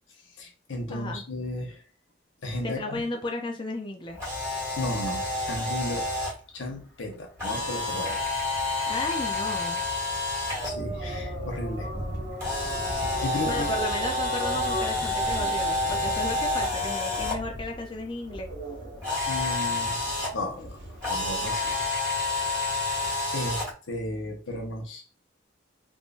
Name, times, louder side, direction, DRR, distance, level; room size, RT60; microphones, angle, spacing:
voice 1, 0.4-1.8 2.4-3.0 4.8-6.0 6.5-8.2 10.2-10.3 10.6-11.9 13.2-13.7 19.3-20.0 20.3-20.8 21.1-21.7 23.3-25.0, left 1 dB, 85° left, 0.9 m, -34 dB
voice 2, 0.9-1.2 2.6-4.2 8.9-9.8 13.4-18.5, left 2 dB, 25° left, 0.4 m, -34 dB
Camera, 4.1-6.3 7.4-10.7 12.4-17.3 19.0-20.3 21.0-23.7, left 2 dB, 15° right, 1.7 m, -29 dB
sound 1, 10.6-21.9, equal, 60° right, 1.3 m, -37 dB
3.6 x 2.6 x 2.5 m
head